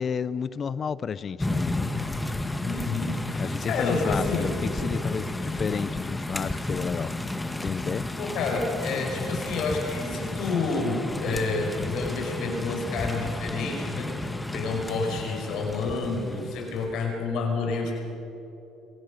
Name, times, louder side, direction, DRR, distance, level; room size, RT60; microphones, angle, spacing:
voice 1, 0.0-1.8 3.4-7.1 7.6-8.1, left 6 dB, 45° left, 18 dB, 0.7 m, -31 dB
sound 1, 1.4-16.9, left 2 dB, 10° left, 1.6 m, -32 dB
voice 2, 2.6-4.5 8.2-14.1 14.5-17.9, left 3 dB, 65° left, 2 dB, 5.8 m, -29 dB
24.0 x 17.5 x 6.6 m, 3.0 s
hypercardioid pair, 70°, 0 cm